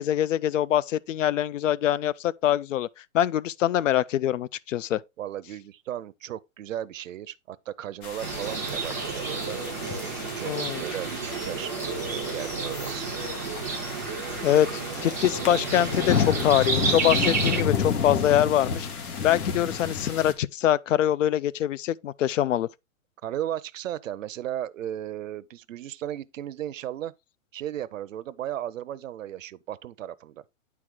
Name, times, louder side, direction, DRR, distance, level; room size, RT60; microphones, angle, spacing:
voice 1, 0.0-2.9 3.1-5.0 10.5-10.8 14.4-18.9 19.2-22.7, left 11 dB, 60° left, 0.5 m, -24 dB
voice 2, 5.2-9.6 10.4-11.7 12.3-13.1 23.2-27.1 27.5-30.4, right 11 dB, 60° right, 0.7 m, -35 dB
sound 1, 8.0-20.3, left 6 dB, 80° left, 2.2 m, -31 dB
sound 2, 8.2-17.6, right 5 dB, 10° right, 0.4 m, -31 dB
9.7 x 4.7 x 3.6 m
hypercardioid pair, 175°, 43 cm